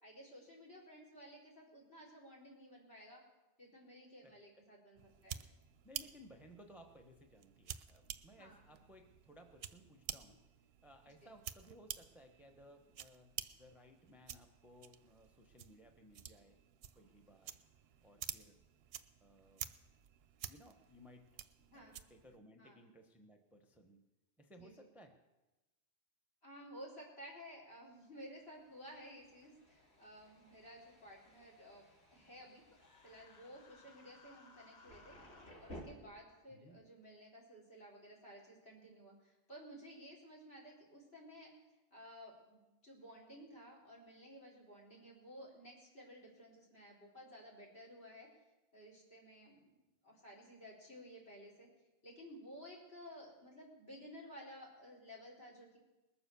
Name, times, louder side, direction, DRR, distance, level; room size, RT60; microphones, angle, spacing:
voice 1, 0.0-3.2 3.6-5.4 8.4-8.8 11.2-11.3 21.6-22.0 22.6-22.8 24.6-24.9 26.4-32.6 33.0-35.2 35.6-41.5 41.9-48.3 48.7-49.8 50.0-51.7 52.0-55.8, equal, 60° left, -2 dB, 4.4 m, -55 dB
sound 1, 5.0-22.4, right 9 dB, 65° right, 0.8 m, -51 dB
voice 2, 5.8-10.4 10.8-16.6 16.9-17.5 18.0-18.6 19.2-19.7 20.5-21.2 21.7-24.0 24.4-25.1 36.5-36.8, equal, ahead, 4 dB, 0.9 m, -60 dB
Thunder, 27.7-35.8, equal, 75° left, 3.2 m, -59 dB
Human voice, 32.7-35.5, left 3 dB, 40° left, 1.2 m, -63 dB
20.5 x 7.0 x 6.8 m, 1.1 s
omnidirectional pair, 1.2 m